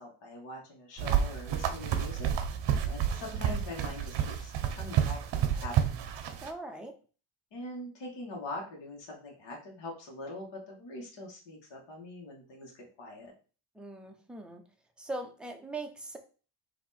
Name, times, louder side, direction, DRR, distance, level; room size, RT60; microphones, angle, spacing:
voice 1, 0.0-2.3 2.8-6.0 7.5-13.3, left 2 dB, 60° left, -1 dB, 1.6 m, -43 dB
sound 1, 1.0-6.5, right 9 dB, 60° right, 0.7 m, -30 dB
voice 2, 6.4-7.0 13.8-14.6 15.0-16.2, right 2 dB, ahead, 3 dB, 0.5 m, -40 dB
4.3 x 2.9 x 4.1 m, 0.37 s
cardioid pair, 150°, 50 cm